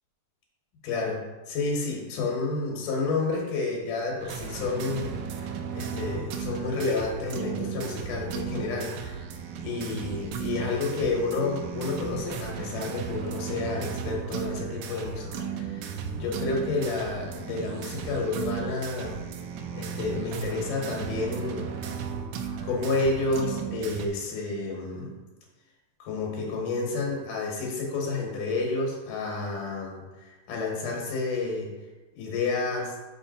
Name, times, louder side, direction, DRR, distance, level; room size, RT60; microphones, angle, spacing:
voice 1, 0.8-1.2 1.5-9.2 9.6-15.9 16.2-19.2 19.7-21.7 22.6-25.1 26.0-31.7 32.2-32.9, left 3 dB, 85° left, -1 dB, 2.8 m, -30 dB
sound 1, 4.2-24.1, right 7 dB, 80° right, 1.8 m, -35 dB
5.7 x 4.5 x 4.0 m, 1.2 s
omnidirectional pair, 3.6 m